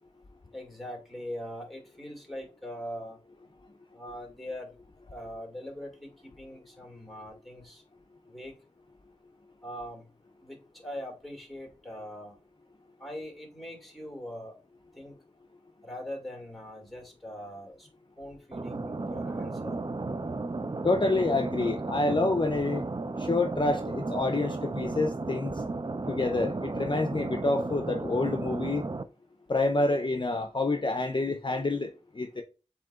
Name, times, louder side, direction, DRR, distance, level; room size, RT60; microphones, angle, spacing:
voice 1, 0.5-3.2 3.9-4.8 5.1-7.8 8.3-8.5 9.6-10.1 10.4-12.4 13.0-14.5 14.9-15.1 15.8-17.9 18.2-19.8, equal, ahead, 2.0 m, -41 dB
sound 1, 18.5-29.0, right 3 dB, 35° right, 0.4 m, -34 dB
voice 2, 20.8-22.8 23.2-25.6 26.1-28.8 29.5-31.9 32.1-32.4, left 2 dB, 40° left, 0.5 m, -27 dB
7.4 x 2.8 x 2.3 m
wide cardioid pair, 45°, 12 cm